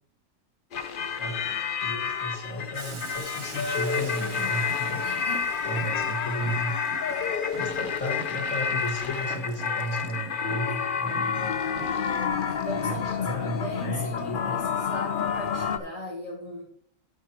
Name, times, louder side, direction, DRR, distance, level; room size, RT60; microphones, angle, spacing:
sound 1, 0.7-15.8, left 6 dB, 50° left, 0.7 m, -29 dB
voice 1, 1.2-5.1 5.6-6.7 7.5-11.5 12.7-14.6, equal, 85° left, 0 dB, 2.6 m, -34 dB
Boiling, 2.7-10.5, right 5 dB, 40° right, 0.4 m, -46 dB
sound 2, 2.9-4.4 4.7-6.2 6.4-9.7 10.0-11.5 11.8-13.2, right 10 dB, 65° right, 0.9 m, -46 dB
voice 2, 5.0-5.5 7.6-7.8 12.6-16.7, equal, 30° left, -5 dB, 3.1 m, -38 dB
12.5 x 4.9 x 4.5 m, 0.64 s
omnidirectional pair, 1.3 m